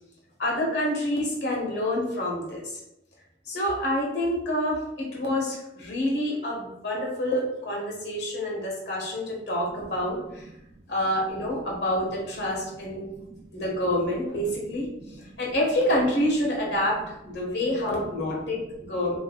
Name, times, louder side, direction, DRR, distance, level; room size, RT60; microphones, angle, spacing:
voice 1, 0.4-2.8 3.5-10.4 10.9-13.1 13.5-14.9 15.4-18.6 18.9-19.2, left 1 dB, 80° left, -3 dB, 1.6 m, -27 dB
voice 2, 13.0-13.5 14.9-15.3 18.3-19.0, right 2 dB, 35° right, 5 dB, 0.4 m, -48 dB
5.7 x 3.2 x 2.4 m, 0.87 s
head